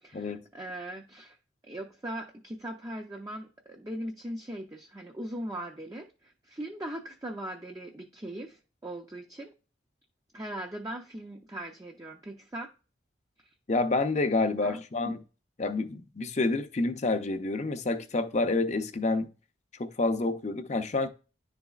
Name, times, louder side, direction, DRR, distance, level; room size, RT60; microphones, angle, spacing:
voice 1, 0.0-1.4 1.7-9.5 10.3-12.7 14.6-14.8, right 1 dB, 20° right, 0.5 m, -39 dB
voice 2, 13.7-15.2 15.6-19.3 19.8-21.1, left 3 dB, 40° left, 0.6 m, -28 dB
10.5 x 4.0 x 2.4 m
head